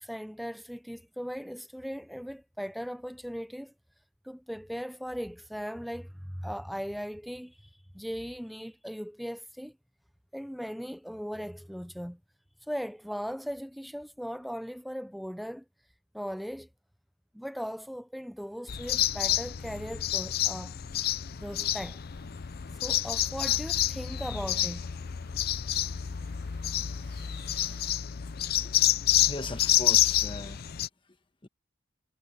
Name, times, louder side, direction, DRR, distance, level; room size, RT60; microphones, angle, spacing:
voice 1, 0.0-3.7 4.2-7.6 7.9-9.7 10.3-12.2 12.7-15.6 16.1-16.7 17.3-20.8 21.4-22.0 22.8-24.8, equal, ahead, 0.5 m, -38 dB
sound 1, 18.7-30.9, left 12 dB, 50° left, 0.5 m, -28 dB
sound 2, 22.1-27.9, right 5 dB, 65° right, 7.1 m, -61 dB
voice 2, 29.2-30.6 31.4-31.5, left 2 dB, 25° left, 1.3 m, -38 dB
head